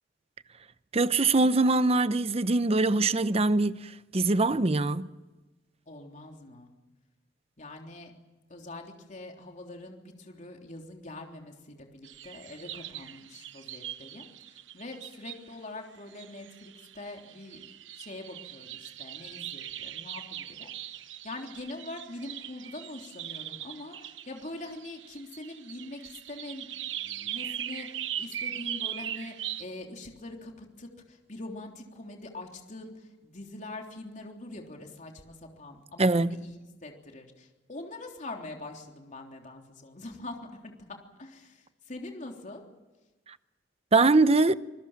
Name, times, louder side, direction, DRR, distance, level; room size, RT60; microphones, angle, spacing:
voice 1, 0.9-5.1 36.0-36.4 43.9-44.5, right 3 dB, 35° right, 0.8 m, -23 dB
voice 2, 5.9-6.7 7.6-8.1 8.5-42.6, left 2 dB, 40° left, 3.5 m, -44 dB
sound 1, 12.0-15.5 16.1-29.6, right 11 dB, 80° right, 1.0 m, -40 dB
27.0 x 21.0 x 7.4 m
head